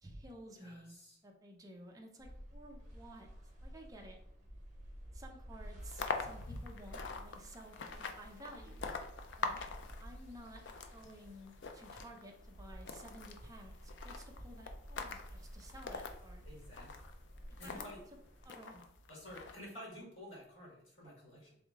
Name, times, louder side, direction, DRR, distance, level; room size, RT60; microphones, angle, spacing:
voice 1, 0.0-0.9 1.2-3.3 3.6-4.2 5.1-8.9 9.4-9.6 10.0-10.6 10.9-16.5 17.6-17.8 18.4-18.8, right 1 dB, 15° right, 1 dB, 0.6 m, -54 dB
voice 2, 0.5-1.2 16.5-17.0 17.6-18.0 19.1-21.6, equal, 75° left, -3 dB, 1.8 m, -51 dB
sound 1, 2.2-18.5, equal, 35° right, 1.4 m, -52 dB
sound 2, 5.8-17.9 18.4-19.6, left 4 dB, 60° left, 0.4 m, -45 dB
3.6 x 3.4 x 3.6 m, 0.73 s
head